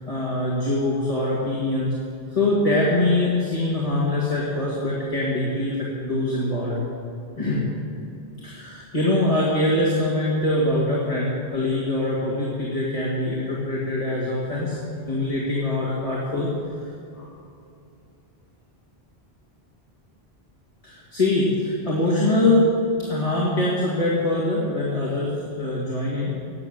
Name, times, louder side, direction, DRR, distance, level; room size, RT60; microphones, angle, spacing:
voice 1, 0.0-2.0 2.3-6.8 7.4-7.6 8.4-14.8 15.1-16.5 17.1-17.3 20.8-22.7 23.1-26.3, left 1 dB, 35° left, -5 dB, 2.1 m, -23 dB
12.0 x 9.2 x 7.9 m, 2.6 s
omnidirectional pair, 1.1 m